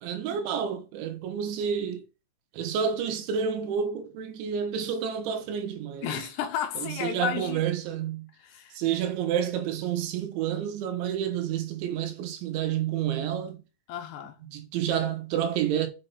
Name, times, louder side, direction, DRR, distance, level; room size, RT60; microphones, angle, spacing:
voice 1, 0.0-2.0 2.5-6.3 6.8-8.3 8.8-13.6 14.5-15.9, right 8 dB, 75° right, 3.5 m, -29 dB
voice 2, 6.0-7.6 8.4-8.8 13.9-14.4, left 8 dB, 75° left, 2.8 m, -32 dB
6.9 x 6.7 x 5.7 m
omnidirectional pair, 5.5 m